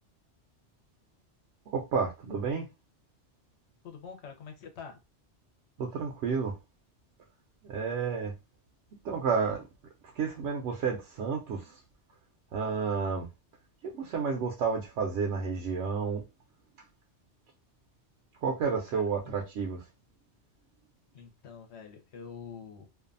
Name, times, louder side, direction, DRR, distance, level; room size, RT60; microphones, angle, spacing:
voice 1, 1.7-2.7 5.8-6.6 7.6-8.3 9.0-9.7 10.1-11.8 12.5-13.3 13.8-16.2 18.4-19.9, right 5 dB, 80° right, 0.9 m, -31 dB
voice 2, 3.8-5.0 18.7-19.4 21.1-22.9, left 6 dB, 70° left, 1.0 m, -46 dB
2.6 x 2.3 x 2.5 m
omnidirectional pair, 1.2 m